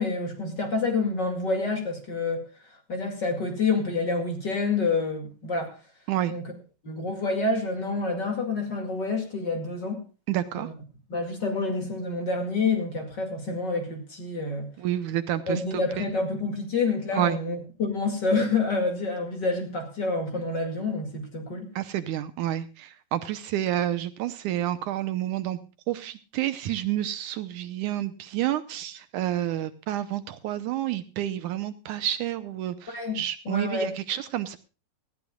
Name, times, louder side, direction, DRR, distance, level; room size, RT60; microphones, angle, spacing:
voice 1, 0.0-2.5 2.9-5.8 6.3-6.4 6.8-10.0 10.6-10.7 11.1-14.7 15.5-21.7 32.9-33.2 33.5-34.0, left 3 dB, 35° left, 2.5 m, -28 dB
voice 2, 10.3-10.7 14.8-15.6 16.0-16.1 17.1-17.4 21.8-25.6 25.9-34.6, right 12 dB, 75° right, 2.2 m, -29 dB
19.0 x 15.0 x 2.4 m
omnidirectional pair, 3.8 m